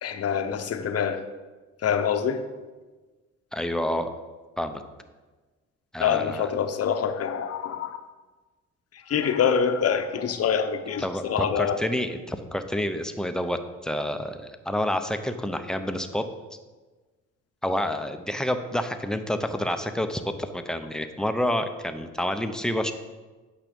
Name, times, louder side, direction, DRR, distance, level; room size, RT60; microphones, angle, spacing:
voice 1, 0.0-1.2 1.8-2.4 6.0-8.0 9.1-11.8, left 7 dB, 55° left, 8 dB, 0.9 m, -25 dB
voice 2, 3.5-4.1 4.6-4.8 5.9-6.5 11.0-16.2 17.6-22.9, left 1 dB, ahead, 7 dB, 0.7 m, -28 dB
8.8 x 5.9 x 5.2 m, 1.3 s
cardioid pair, 90°, 30 cm